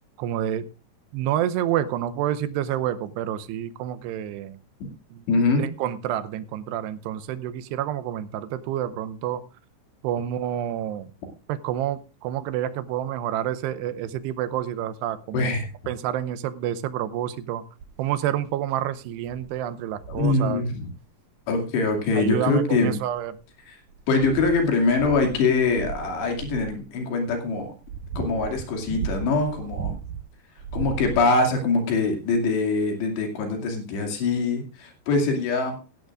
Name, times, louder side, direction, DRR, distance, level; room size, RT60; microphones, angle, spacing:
voice 1, 0.2-0.7 1.1-4.6 5.1-5.2 5.6-9.5 10.0-11.1 11.5-15.5 15.9-17.6 18.0-20.6 22.1-23.3, right 11 dB, 85° right, 13 dB, 2.9 m, -28 dB
voice 2, 5.3-5.7 15.3-15.7 20.1-20.9 21.5-22.9 23.7-23.8 24.1-27.7 28.2-30.0 30.7-35.8, left 3 dB, 90° left, 3 dB, 4.6 m, -23 dB
sound 1, 17.8-18.1 18.7-18.8 19.3-19.5 20.0-20.4 21.8-21.9 22.7-23.4 23.9-26.8 27.5-30.2 30.6-31.5 32.3-32.4, right 6 dB, 70° right, 2.2 m, -36 dB
17.0 x 14.0 x 2.5 m, 0.31 s
omnidirectional pair, 4.8 m